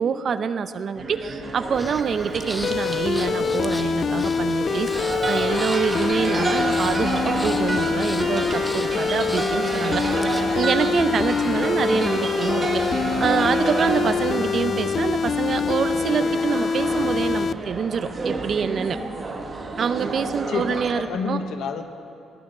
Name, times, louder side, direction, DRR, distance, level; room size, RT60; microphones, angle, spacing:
voice 1, 0.0-19.0 19.8-21.4, right 6 dB, 55° right, 12 dB, 0.6 m, -26 dB
sound 1, 1.0-20.9, right 3 dB, 35° right, 1.6 m, -29 dB
Breathing, 1.7-10.6, equal, 5° left, 0.8 m, -39 dB
sound 2, 2.6-17.5, left 6 dB, 50° left, 0.3 m, -25 dB
voice 2, 20.5-21.8, left 5 dB, 75° left, 7 dB, 1.0 m, -30 dB
18.0 x 6.3 x 8.8 m, 2.5 s
cardioid pair, 90°, 0 cm